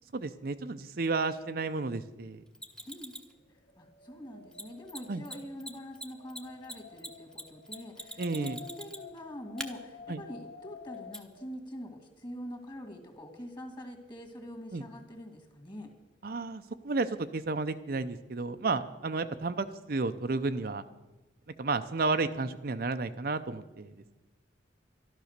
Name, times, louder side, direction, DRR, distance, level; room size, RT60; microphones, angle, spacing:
voice 1, 0.1-2.4 5.1-5.2 8.2-8.6 10.1-10.2 14.7-14.8 16.2-20.8 21.6-24.1, right 3 dB, 50° right, 9 dB, 0.5 m, -32 dB
Mechanisms, 2.5-3.3 4.5-4.6 4.9-5.0 5.2-5.3 5.6-9.2 9.6-9.7 11.1-11.2, equal, 5° left, 0.9 m, -41 dB
Wind, 3.5-11.5, left 6 dB, 55° left, 0.8 m, -51 dB
voice 2, 3.5-15.9, equal, 25° left, 4 dB, 2.2 m, -44 dB
12.5 x 12.5 x 6.6 m, 1.1 s
head